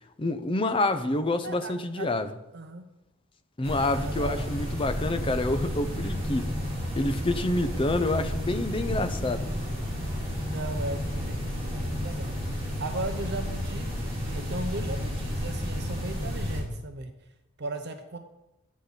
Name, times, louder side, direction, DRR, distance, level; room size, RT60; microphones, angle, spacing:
voice 1, 0.2-2.3 3.6-6.5 6.9-9.5, left 2 dB, 25° left, 0.6 m, -27 dB
voice 2, 1.4-2.1 2.5-2.8 3.9-4.4 10.5-17.1 17.6-18.2, right 2 dB, 50° right, 0.7 m, -37 dB
sound 1, 3.6-16.6, equal, 25° right, 3.3 m, -32 dB
11.5 x 8.3 x 4.0 m
head